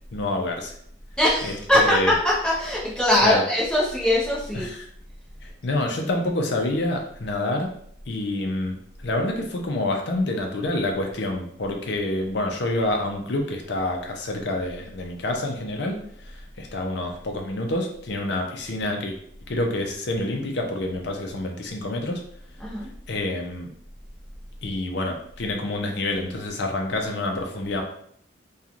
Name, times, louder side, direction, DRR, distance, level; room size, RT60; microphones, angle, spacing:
voice 1, 0.1-0.7 1.4-2.1 3.2-3.4 4.5-4.9 5.4-7.7 8.1-8.8 9.0-19.2 19.5-22.2 23.1-23.7 24.6-27.8, left 2 dB, 60° left, 2 dB, 0.5 m, -27 dB
voice 2, 1.2-4.7 22.6-22.9, left 1 dB, 5° left, -7 dB, 0.6 m, -21 dB
2.9 x 2.3 x 2.5 m, 0.64 s
head